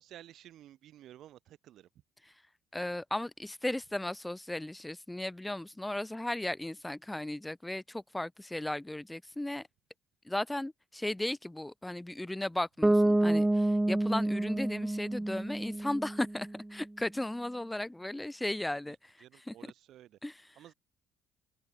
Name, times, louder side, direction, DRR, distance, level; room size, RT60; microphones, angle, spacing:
voice 1, 0.0-1.9 17.7-17.8 18.9-20.2 20.5-20.7, right 12 dB, 65° right, 3.0 m, -54 dB
voice 2, 2.7-9.7 10.3-19.5 20.2-20.4, left 1 dB, 10° left, 3.4 m, -36 dB
Bass guitar, 12.8-16.7, right 1 dB, 10° right, 0.3 m, -28 dB
supercardioid pair, 85°, 0 cm